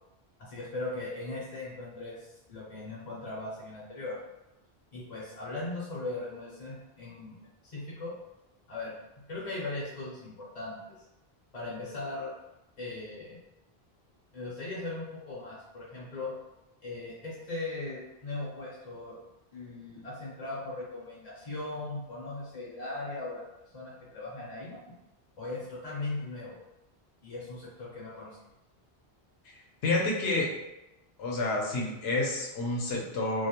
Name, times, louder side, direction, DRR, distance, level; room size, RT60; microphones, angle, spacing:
voice 1, 0.4-4.2 4.9-7.3 7.6-8.1 8.7-8.9 9.3-10.8 11.5-12.3 12.8-13.4 14.3-16.3 16.8-19.2 19.5-23.4 23.7-24.8 25.4-26.6 27.2-28.4, left 2 dB, 45° left, -7 dB, 0.7 m, -38 dB
voice 2, 29.8-30.5 31.2-33.5, left 2 dB, 75° left, -1 dB, 0.8 m, -29 dB
2.3 x 2.1 x 2.8 m, 0.94 s
omnidirectional pair, 1.1 m